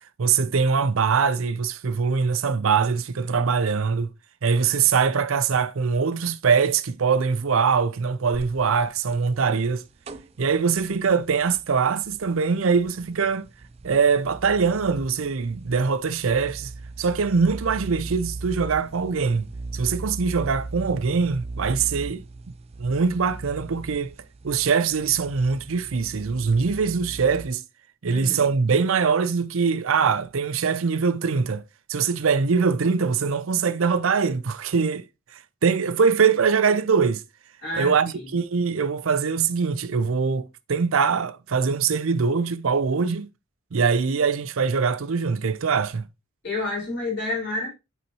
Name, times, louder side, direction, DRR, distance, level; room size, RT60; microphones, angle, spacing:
voice 1, 0.2-4.1 4.4-9.8 10.4-13.5 13.8-16.7 17.0-19.5 19.7-22.2 22.8-24.1 24.4-27.6 28.0-31.6 31.9-35.0 35.3-37.2 37.7-43.3 43.7-46.1, right 5 dB, 75° right, 0.5 m, -23 dB
sound 1, 8.3-27.5, right 3 dB, 30° right, 0.3 m, -39 dB
voice 2, 37.6-38.3 46.4-47.7, left 2 dB, 55° left, 4.3 m, -29 dB
8.5 x 4.1 x 2.9 m
head